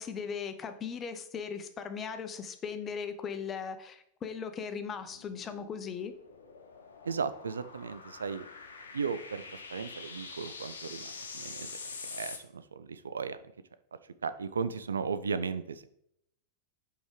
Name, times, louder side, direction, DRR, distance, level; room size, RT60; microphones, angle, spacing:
voice 1, 0.0-6.1, left 6 dB, 25° left, 9 dB, 0.7 m, -38 dB
sound 1, 4.9-12.4, left 4 dB, 70° left, 0.9 m, -46 dB
voice 2, 7.0-8.5 8.9-9.4 9.7-11.7 12.1-13.4 14.2-15.9, right 5 dB, 70° right, 13 dB, 0.4 m, -35 dB
5.2 x 4.9 x 4.8 m, 0.74 s
figure-of-eight pair, 90°, 0 cm